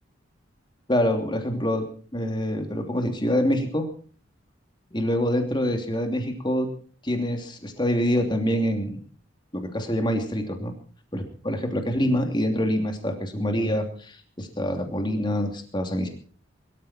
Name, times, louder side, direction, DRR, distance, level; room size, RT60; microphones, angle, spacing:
voice 1, 0.9-1.9 2.1-3.9 4.9-6.7 7.0-9.0 9.5-10.7 11.1-16.1, equal, 25° left, 4 dB, 2.9 m, -25 dB
23.0 x 13.5 x 4.4 m, 0.42 s
head